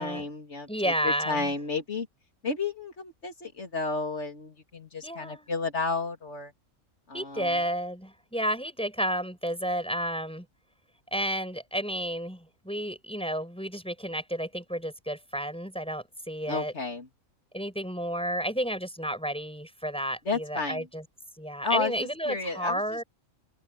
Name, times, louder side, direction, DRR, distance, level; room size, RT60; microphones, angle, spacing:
voice 1, 0.0-2.1 2.4-6.5 7.1-7.6 16.5-17.1 20.3-20.9 21.6-23.0, left 4 dB, 50° left, 3.5 m, -32 dB
voice 2, 0.7-1.5 5.0-5.5 7.1-10.5 11.1-16.7 17.5-21.0 21.4-23.0, equal, 5° left, 7.2 m, -31 dB
open air
omnidirectional pair, 1.5 m